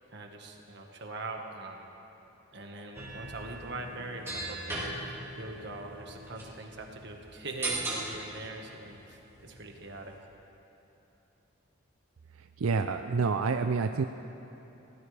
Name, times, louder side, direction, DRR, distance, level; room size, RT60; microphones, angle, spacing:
voice 1, 0.1-1.9 2.5-10.1, right 2 dB, 55° right, 2 dB, 1.6 m, -42 dB
sound 1, 2.9-10.2, right 2 dB, 10° right, 2.3 m, -40 dB
voice 2, 12.6-14.0, right 4 dB, 90° right, 7 dB, 0.5 m, -28 dB
24.5 x 17.0 x 3.4 m, 3.0 s
head